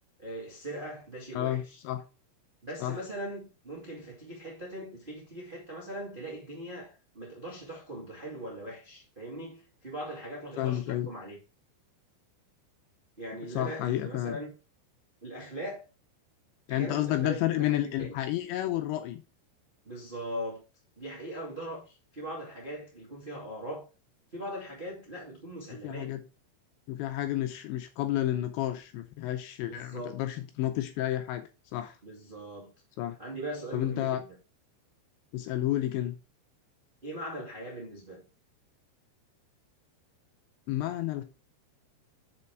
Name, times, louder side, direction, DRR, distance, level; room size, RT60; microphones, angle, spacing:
voice 1, 0.2-1.8 2.6-11.4 13.2-14.5 15.2-15.8 16.7-18.2 19.8-20.6 21.0-23.8 24.3-26.1 29.6-30.2 32.0-32.7 33.2-34.3 37.0-38.2, right 1 dB, 60° right, 0.5 m, -40 dB
voice 2, 1.3-2.0 2.8-3.0 10.6-11.1 13.6-14.4 16.7-19.2 25.8-26.2 26.9-32.0 33.0-33.2 33.7-34.2 35.3-36.2 40.7-41.2, left 13 dB, 80° left, 2.7 m, -31 dB
6.9 x 5.7 x 4.7 m
omnidirectional pair, 5.7 m